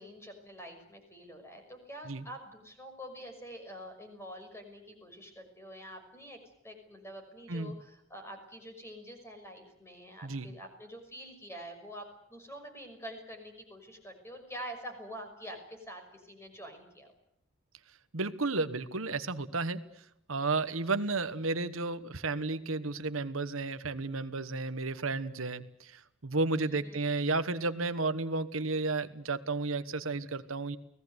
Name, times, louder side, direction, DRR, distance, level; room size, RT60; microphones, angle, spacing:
voice 1, 0.0-6.4 6.6-17.1 26.7-27.0, equal, 15° left, 5 dB, 5.9 m, -46 dB
voice 2, 18.1-19.8 20.3-30.8, right 3 dB, 70° right, 11 dB, 1.3 m, -32 dB
29.5 x 18.5 x 8.2 m, 0.78 s
head